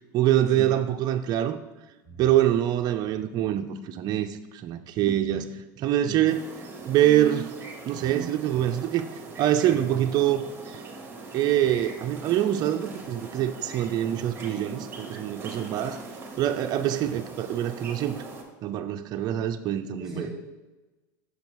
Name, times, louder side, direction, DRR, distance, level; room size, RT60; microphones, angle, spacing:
voice 1, 0.1-1.6 2.2-6.5 6.8-9.0 9.4-10.8 11.3-16.0 16.4-18.2 18.6-20.3, right 12 dB, 40° right, 7 dB, 0.4 m, -25 dB
sound 1, 6.3-18.4, right 3 dB, 20° right, 1.1 m, -41 dB
voice 2, 20.0-20.3, right 3 dB, ahead, -6 dB, 1.2 m, -36 dB
6.3 x 5.1 x 3.1 m, 1.1 s
supercardioid pair, 110°, 11 cm